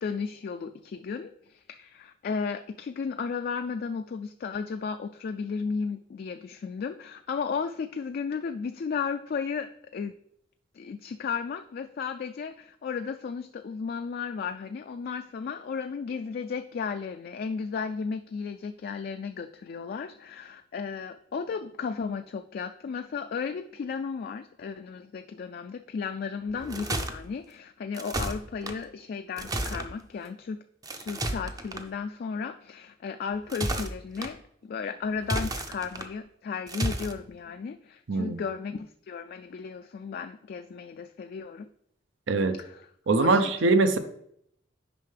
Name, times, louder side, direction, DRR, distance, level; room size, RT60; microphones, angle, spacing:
voice 1, 0.0-10.1 10.7-30.6 30.9-41.7 42.6-42.9 43.2-43.5, left 5 dB, 50° left, 7 dB, 0.3 m, -34 dB
sound 1, 26.5-27.1 27.9-28.7 29.4-29.9 30.8-31.8 33.3-34.3 35.2-36.1 36.7-37.1, right 1 dB, 20° right, 0.5 m, -32 dB
voice 2, 43.1-44.0, right 3 dB, 75° right, 10 dB, 0.6 m, -22 dB
9.0 x 5.4 x 3.3 m, 0.71 s
head